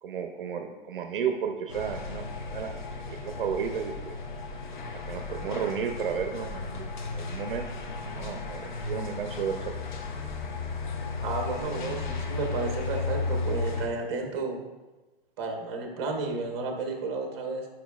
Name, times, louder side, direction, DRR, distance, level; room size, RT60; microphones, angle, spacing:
voice 1, 0.0-2.7 3.1-4.1 5.1-7.7 8.2-9.6, right 7 dB, 60° right, 5 dB, 0.6 m, -33 dB
sound 1, 1.7-13.9, left 3 dB, 50° left, 0.7 m, -34 dB
voice 2, 11.2-14.6 15.4-17.7, right 3 dB, 30° right, 3 dB, 0.8 m, -32 dB
9.0 x 4.9 x 2.3 m, 1.2 s
hypercardioid pair, 170°, 30 cm